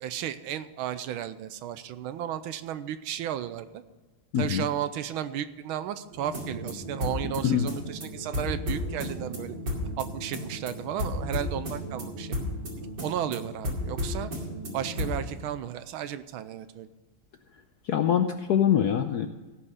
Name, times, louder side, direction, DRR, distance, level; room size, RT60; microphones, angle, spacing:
voice 1, 0.0-3.8 4.4-9.5 10.0-12.4 13.0-14.3 14.7-16.9, right 10 dB, 80° right, 12 dB, 1.4 m, -34 dB
voice 2, 4.3-4.6 7.4-7.7 17.9-19.3, left 9 dB, 75° left, 7 dB, 0.9 m, -24 dB
sound 1, 6.1-15.3, left 1 dB, 55° right, 3.1 m, -34 dB
16.5 x 5.6 x 6.5 m, 1.3 s
omnidirectional pair, 2.3 m